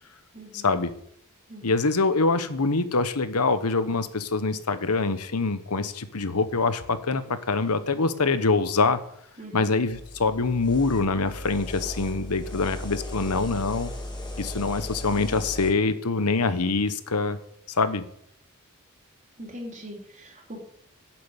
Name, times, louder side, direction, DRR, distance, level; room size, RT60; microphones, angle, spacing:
voice 1, 0.3-0.7 1.5-1.7 9.4-9.7 19.4-20.6, equal, 35° right, -1 dB, 4.1 m, -41 dB
voice 2, 1.6-9.0 9.5-13.9 14.4-17.4 17.7-18.0, left 3 dB, 90° left, 12 dB, 1.1 m, -24 dB
sound 1, 9.9-15.7, left 1 dB, 20° left, 3.3 m, -37 dB
11.0 x 7.6 x 8.4 m, 0.69 s
head